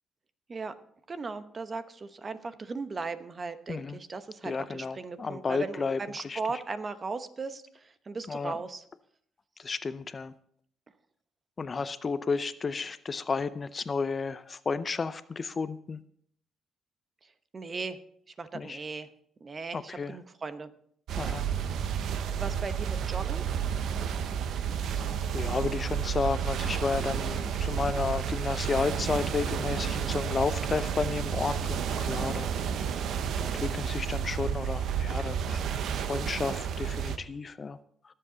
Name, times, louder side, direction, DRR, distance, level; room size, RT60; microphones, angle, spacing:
voice 1, 1.1-8.8 17.5-18.0 18.4-19.1 19.4-20.7 22.1-23.4, right 4 dB, 35° right, 11 dB, 1.0 m, -37 dB
voice 2, 3.7-4.0 4.4-6.4 8.3-8.6 9.6-10.3 11.6-16.0 18.5-18.8 19.7-20.2 21.2-21.5 25.3-32.8 33.4-35.6 35.9-37.8, left 4 dB, 35° left, 14 dB, 0.6 m, -32 dB
sound 1, 21.1-37.2, right 8 dB, 75° right, 0.9 m, -31 dB
21.5 x 7.8 x 4.0 m, 0.65 s
cardioid pair, 90°, 0 cm